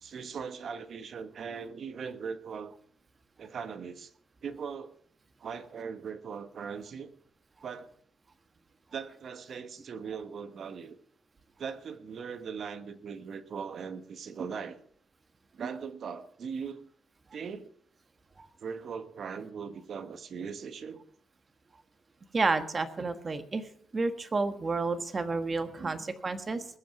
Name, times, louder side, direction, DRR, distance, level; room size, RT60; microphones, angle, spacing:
voice 1, 0.0-2.7 3.4-4.1 4.4-4.9 5.4-7.1 7.6-7.9 8.9-11.0 11.6-14.8 15.5-16.8 17.3-17.7 18.6-21.0 25.8-26.0, right 6 dB, 55° right, 11 dB, 1.2 m, -39 dB
voice 2, 22.3-23.6 23.9-26.7, right 3 dB, 30° right, 9 dB, 1.4 m, -30 dB
20.0 x 7.6 x 5.9 m, 0.63 s
cardioid pair, 90°, 0 cm